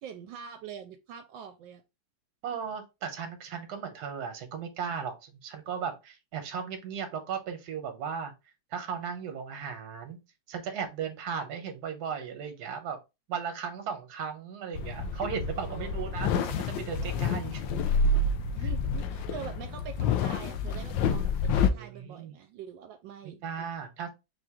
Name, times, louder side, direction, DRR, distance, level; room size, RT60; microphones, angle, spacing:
voice 1, 0.0-1.8 15.5-16.0 18.5-23.4, right 8 dB, 80° right, 1.3 m, -44 dB
voice 2, 2.4-8.3 8.7-10.2 10.5-13.0 13.3-17.7 19.4-19.6 21.7-22.3 23.4-24.1, right 7 dB, 60° right, 1.4 m, -36 dB
sound 1, 14.7-21.7, left 4 dB, 80° left, 1.3 m, -28 dB
4.5 x 2.5 x 3.5 m
omnidirectional pair, 2.0 m